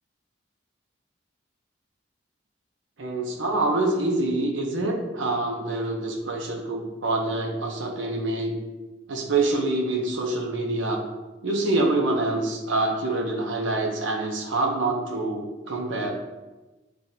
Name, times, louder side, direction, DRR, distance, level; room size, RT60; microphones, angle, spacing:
voice 1, 3.0-8.6 9.1-11.0 11.4-16.1, right 2 dB, 85° right, 0 dB, 0.7 m, -26 dB
7.4 x 2.5 x 2.7 m, 1.1 s
head